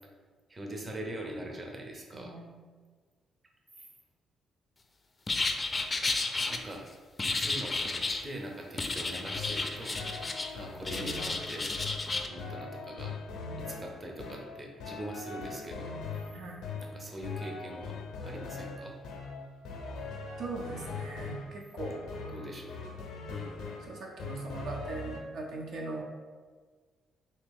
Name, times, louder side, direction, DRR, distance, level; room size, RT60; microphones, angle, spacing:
voice 1, 0.5-2.3 3.8-3.9 6.5-6.9 7.3-10.0 10.5-11.8 12.3-13.1 13.6-15.9 16.8-18.0 18.2-19.0 22.3-22.7 23.3-23.5, right 1 dB, 30° right, 1 dB, 0.6 m, -42 dB
voice 2, 2.1-2.5 16.3-16.6 20.4-22.0 23.9-26.0, right 3 dB, 70° right, 0 dB, 0.5 m, -40 dB
sound 1, 5.3-6.6 7.2-8.3 8.8-10.5 10.8-12.3, left 3 dB, 25° left, 0.3 m, -32 dB
sound 2, 9.1-25.2, left 4 dB, 90° left, 0.5 m, -41 dB
3.0 x 2.8 x 3.5 m, 1.5 s
cardioid pair, 90°, 0 cm